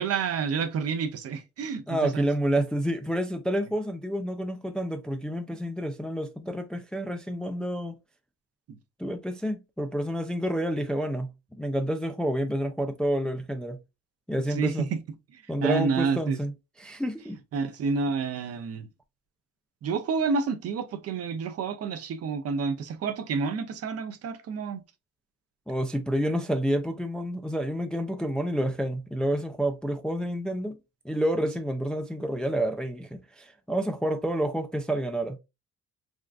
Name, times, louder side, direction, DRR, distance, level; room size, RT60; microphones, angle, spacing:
voice 1, 0.0-2.3 14.5-15.0 15.3-16.4 17.5-18.9 19.8-24.8, right 5 dB, 55° right, 0.5 m, -29 dB
voice 2, 1.9-8.0 9.0-13.8 14.3-14.9 15.5-16.5 16.8-17.4 25.7-30.8 31.0-35.4, right 1 dB, 5° left, 0.3 m, -29 dB
3.6 x 2.3 x 2.3 m
cardioid pair, 90°, 30 cm